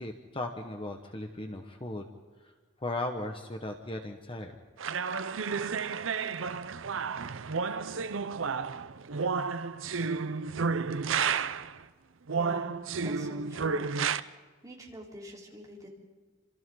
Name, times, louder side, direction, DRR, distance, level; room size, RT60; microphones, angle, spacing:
voice 1, 0.0-2.1 2.4-2.5 2.8-4.5, left 2 dB, 25° left, 4 dB, 1.4 m, -37 dB
sound 1, 4.8-11.8 12.3-14.2, right 5 dB, 80° right, 0.7 m, -31 dB
voice 2, 12.3-12.7 13.0-13.9 14.2-14.4 14.6-15.9, equal, 20° right, -3 dB, 4.1 m, -46 dB
30.0 x 27.0 x 3.9 m, 1.5 s
head